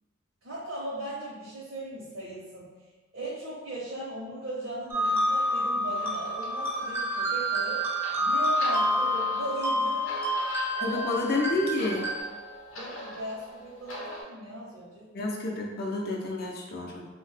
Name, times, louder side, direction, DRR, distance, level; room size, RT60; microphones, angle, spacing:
voice 1, 0.4-2.7 3.1-7.9 8.2-10.2 10.8-11.1 12.7-15.1, right 1 dB, 70° right, -8 dB, 0.6 m, -38 dB
sound 1, 4.9-12.2, equal, 10° right, 0.4 m, -28 dB
sound 2, 5.0-14.2, left 1 dB, 85° left, 0.7 m, -43 dB
voice 2, 10.8-12.1 15.1-17.0, left 2 dB, 50° left, 0 dB, 0.5 m, -29 dB
2.8 x 2.1 x 3.2 m, 1.2 s
head